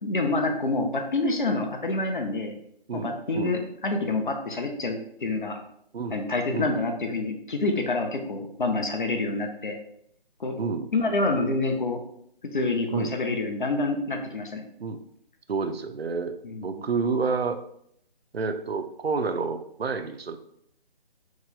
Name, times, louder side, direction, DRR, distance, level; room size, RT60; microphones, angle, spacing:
voice 1, 0.0-2.6 2.9-5.6 6.1-9.8 10.4-10.6 10.9-12.0 12.5-14.6 16.4-16.8, left 2 dB, 55° left, 4 dB, 0.6 m, -27 dB
voice 2, 2.9-3.6 5.9-6.2 6.5-6.8 10.6-10.9 12.9-13.1 14.8-15.0 15.5-17.6 18.3-20.4, right 4 dB, 90° right, 8 dB, 0.5 m, -29 dB
3.0 x 2.0 x 3.6 m, 0.69 s
figure-of-eight pair, 150°, 30 cm